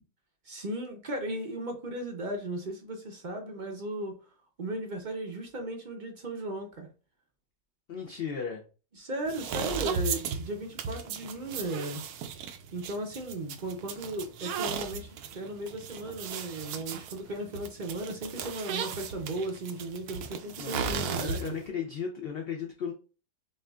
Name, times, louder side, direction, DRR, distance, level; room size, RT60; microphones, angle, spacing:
voice 1, 0.4-4.2 4.6-6.9 8.9-12.0 12.7-21.5, right 1 dB, 50° right, 0.6 m, -36 dB
voice 2, 7.9-8.6 20.6-22.9, left 7 dB, 60° left, 0.6 m, -35 dB
sound 1, 9.3-21.7, right 6 dB, 85° right, 1.1 m, -36 dB
6.4 x 2.5 x 2.3 m
omnidirectional pair, 1.6 m